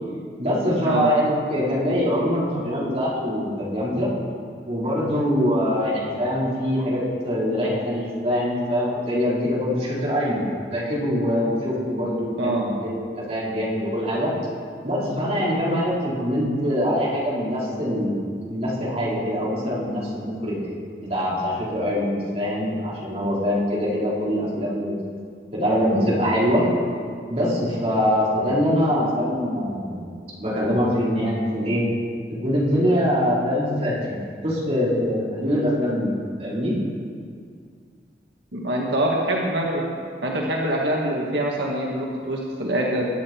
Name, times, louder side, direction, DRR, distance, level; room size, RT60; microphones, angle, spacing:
voice 1, 0.4-4.1 4.7-10.4 10.7-14.3 14.8-18.2 18.5-20.6 21.0-24.9 25.5-26.7 27.3-30.0 30.4-31.8 32.4-36.1 36.4-36.7, equal, 35° right, -7 dB, 4.6 m, -23 dB
voice 2, 38.5-39.8 40.2-43.1, right 1 dB, 85° right, -2 dB, 1.8 m, -24 dB
23.0 x 10.5 x 4.6 m, 2.1 s
head